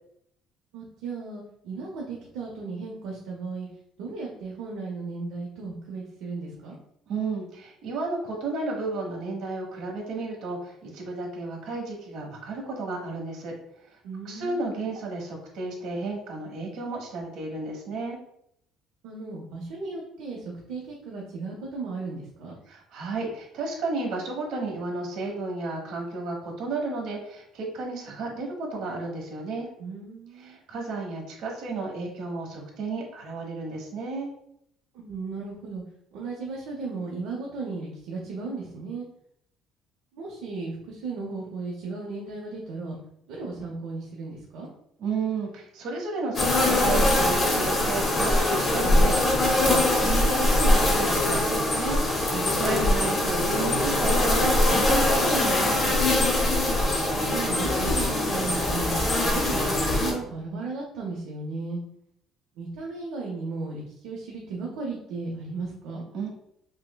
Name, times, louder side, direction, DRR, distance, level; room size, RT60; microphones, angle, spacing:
voice 1, 0.7-3.7 4.0-6.8 14.0-14.7 19.0-22.6 29.8-30.6 34.9-35.8 36.1-39.0 40.1-43.0 43.3-44.7 52.3-52.8 57.1-61.8 62.6-66.0, right 3 dB, 85° right, -2 dB, 0.7 m, -35 dB
voice 2, 7.1-13.5 13.9-14.0 14.2-18.2 22.7-29.7 30.3-34.3 45.0-56.0 66.1-66.3, right 3 dB, 65° right, -1 dB, 1.1 m, -33 dB
sound 1, 46.3-60.1, left 1 dB, 20° left, 0.6 m, -22 dB
5.4 x 2.1 x 2.2 m, 0.73 s
cardioid pair, 170°, 0 cm